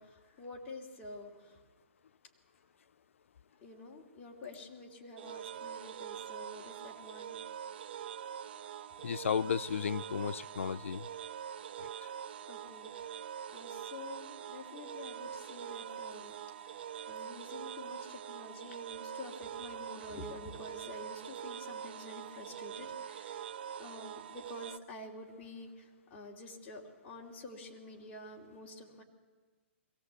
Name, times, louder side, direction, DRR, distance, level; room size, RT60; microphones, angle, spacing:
voice 1, 0.0-1.6 3.6-7.4 12.0-12.1 12.5-13.1 13.5-16.4 16.6-16.8 17.1-23.5 23.8-29.0, left 2 dB, 20° left, -2 dB, 2.9 m, -49 dB
sound 1, 5.2-24.8, right 9 dB, 50° right, 0.7 m, -44 dB
voice 2, 9.0-11.1 11.8-11.9, left 7 dB, 85° left, 16 dB, 0.6 m, -34 dB
23.0 x 17.0 x 8.2 m, 1.5 s
hypercardioid pair, 165°, 7 cm